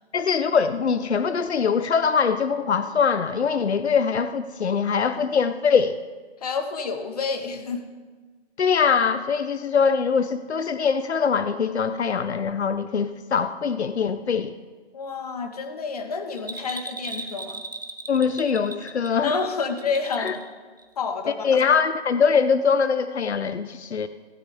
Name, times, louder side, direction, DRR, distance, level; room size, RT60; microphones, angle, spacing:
voice 1, 0.1-6.0 8.6-14.5 18.1-19.3 20.2-20.3 21.4-24.1, left 6 dB, 80° left, 11 dB, 0.9 m, -22 dB
voice 2, 6.4-7.9 14.9-17.6 19.2-20.4 21.0-21.6, left 5 dB, 35° left, 6 dB, 1.6 m, -29 dB
Bell, 16.4-20.5 20.8-20.9, right 3 dB, 20° right, 0.5 m, -37 dB
18.0 x 16.0 x 3.6 m, 1.3 s
hypercardioid pair, 170°, 33 cm